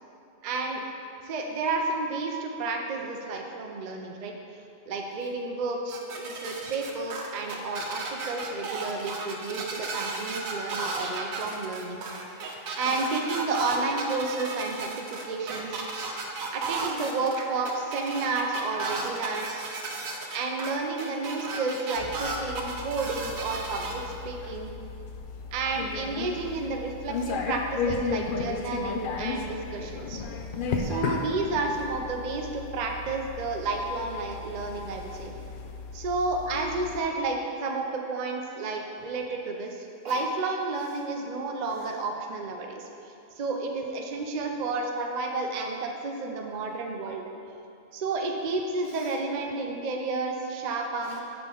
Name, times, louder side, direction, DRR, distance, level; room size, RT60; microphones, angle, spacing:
voice 1, 0.4-0.8 1.2-4.3 4.9-12.0 12.8-15.8 16.5-19.6 20.3-24.7 25.5-30.2 30.8-35.3 35.9-42.9 43.4-47.2 47.9-51.2, right 3 dB, 65° right, 2 dB, 0.4 m, -31 dB
sound 1, 5.9-23.9, right 3 dB, 80° right, 1.2 m, -34 dB
voice 2, 12.2-13.1 13.7-13.9 15.5-15.7 17.8-17.9 20.2-20.3 24.0-24.2 24.8-24.9 25.3-25.4 26.3-26.6 27.1-27.3 30.4-30.9 31.7-31.8 35.6-36.0 40.0-40.3 40.8-41.1 41.7-41.9 48.8-49.2 51.0-51.2, right 2 dB, 50° right, -3 dB, 1.3 m, -50 dB
sound 2, 22.0-37.0, left 4 dB, 75° left, 0.4 m, -35 dB
8.1 x 4.8 x 3.8 m, 2.8 s
omnidirectional pair, 1.4 m